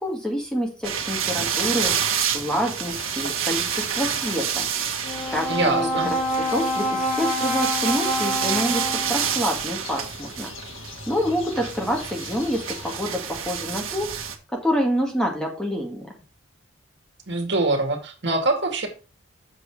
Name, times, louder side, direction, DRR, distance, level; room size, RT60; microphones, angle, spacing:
voice 1, 0.0-4.7 5.3-6.2 6.5-10.5 11.1-16.1, equal, 5° left, 0 dB, 1.8 m, -27 dB
sound 1, 0.8-14.3, right 8 dB, 70° right, 1.6 m, -29 dB
sound 2, 2.8-13.0, left 4 dB, 65° left, 2.6 m, -43 dB
Brass instrument, 5.0-9.4, equal, 35° left, 1.7 m, -27 dB
voice 2, 5.5-6.1 17.3-18.9, right 2 dB, 55° right, 4 dB, 2.2 m, -24 dB
7.5 x 6.7 x 4.8 m, 0.34 s
head